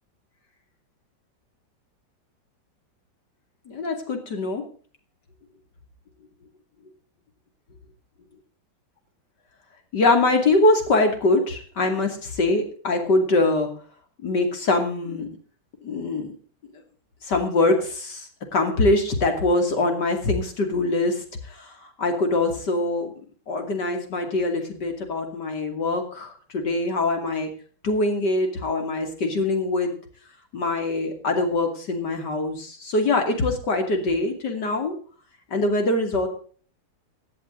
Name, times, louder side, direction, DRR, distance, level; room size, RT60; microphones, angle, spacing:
voice 1, 3.7-4.6 9.9-13.7 14.2-15.3 15.8-16.3 17.2-23.1 23.5-27.5 27.8-29.9 30.5-34.9 35.5-36.3, left 2 dB, 65° left, 5 dB, 3.2 m, -23 dB
17.0 x 10.5 x 3.9 m, 0.44 s
omnidirectional pair, 2.0 m